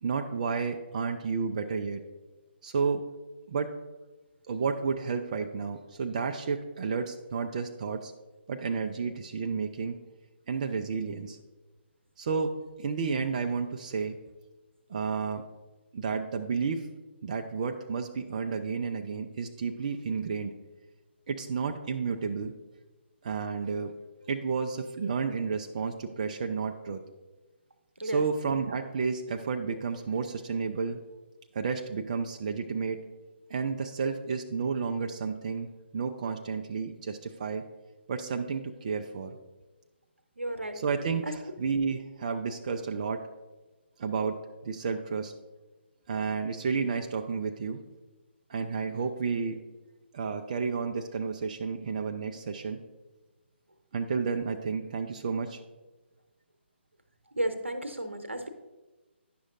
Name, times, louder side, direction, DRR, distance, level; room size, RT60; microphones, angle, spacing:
voice 1, 0.0-2.0 2.6-3.1 3.5-3.7 4.5-8.1 8.5-10.0 10.5-11.4 12.2-14.2 14.9-15.4 15.9-16.9 17.2-20.5 21.3-22.5 23.2-23.9 24.3-27.0 28.0-31.0 31.5-33.0 33.5-35.7 35.9-37.6 38.1-39.4 40.7-43.2 44.0-45.3 46.1-47.8 48.5-49.6 50.1-52.8 53.9-55.6, right 5 dB, 35° right, 5 dB, 0.4 m, -31 dB
voice 2, 40.4-40.8 41.2-41.3 57.4-58.5, right 1 dB, 80° right, 7 dB, 0.9 m, -33 dB
10.0 x 6.1 x 2.5 m, 1.2 s
figure-of-eight pair, 140°, 6 cm